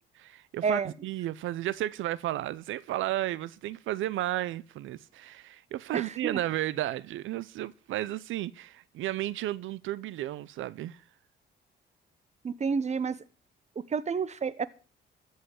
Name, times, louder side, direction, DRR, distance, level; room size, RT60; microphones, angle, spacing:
voice 1, 0.2-11.0, right 14 dB, 80° right, 0.6 m, -33 dB
voice 2, 5.9-6.4 12.4-13.2 13.9-14.7, right 5 dB, 35° right, 0.9 m, -29 dB
13.5 x 5.7 x 7.9 m
cardioid pair, 90°, 20 cm